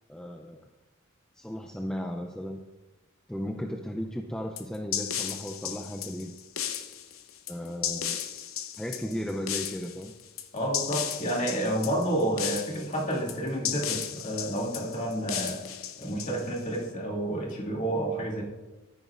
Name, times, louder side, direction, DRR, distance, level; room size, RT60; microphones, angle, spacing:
voice 1, 0.1-0.7 1.4-2.6 3.3-6.3 7.5-8.2 8.8-10.1, equal, 5° left, 2 dB, 0.4 m, -35 dB
sound 1, 4.6-16.8, left 9 dB, 70° left, 0.8 m, -35 dB
voice 2, 10.5-15.6 16.0-18.4, right 1 dB, 35° left, -3 dB, 2.5 m, -30 dB
13.0 x 10.5 x 2.5 m, 1.1 s
head